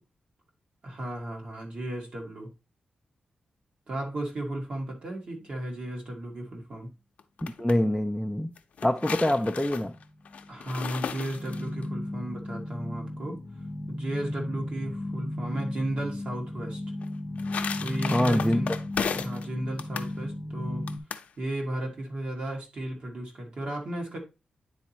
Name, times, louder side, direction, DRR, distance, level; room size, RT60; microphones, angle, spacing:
voice 1, 0.8-2.5 3.9-6.9 9.3-9.4 10.5-13.4 13.9-16.8 17.8-18.7 19.1-20.9 21.4-24.2, right 1 dB, 50° right, 1.7 m, -34 dB
sound 1, 7.2-7.8 8.6-11.9 17.0-19.5 19.8-20.1 20.9-21.3, left 6 dB, 75° left, 0.5 m, -35 dB
voice 2, 7.4-8.5 8.8-9.9 18.1-18.6, left 1 dB, ahead, 0.3 m, -25 dB
sound 2, 9.2-9.3 9.7-21.0, left 1 dB, 35° left, 0.7 m, -35 dB
9.5 x 4.1 x 2.8 m
wide cardioid pair, 150°, 2 cm